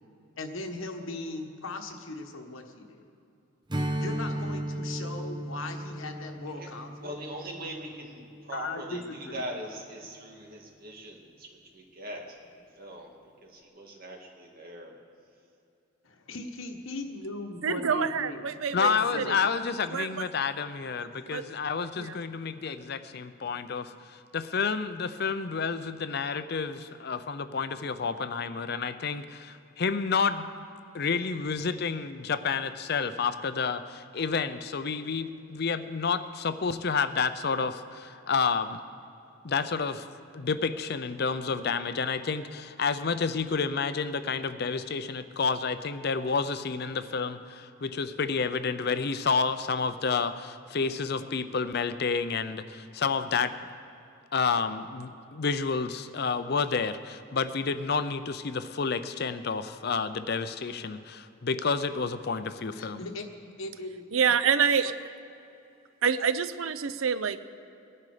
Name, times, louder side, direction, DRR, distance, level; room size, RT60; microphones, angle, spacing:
voice 1, 0.4-3.1 4.0-7.2 8.5-9.4 16.0-19.4 62.8-63.3 63.6-64.0, left 2 dB, 70° left, 4 dB, 1.3 m, -38 dB
Strum, 3.7-8.5, right 1 dB, 20° right, 0.8 m, -35 dB
voice 2, 7.0-11.5 11.7-13.1 13.4-15.0, right 1 dB, 45° right, 0 dB, 2.1 m, -41 dB
voice 3, 17.6-19.4 19.9-20.2 21.3-21.4 22.0-22.2 64.1-64.9 66.0-67.4, right 6 dB, 75° right, 13 dB, 0.6 m, -27 dB
voice 4, 18.7-30.5 30.9-38.8 39.4-40.1 40.3-53.5 54.3-63.0, left 5 dB, 50° left, 11 dB, 0.5 m, -30 dB
20.0 x 11.0 x 5.0 m, 2.7 s
head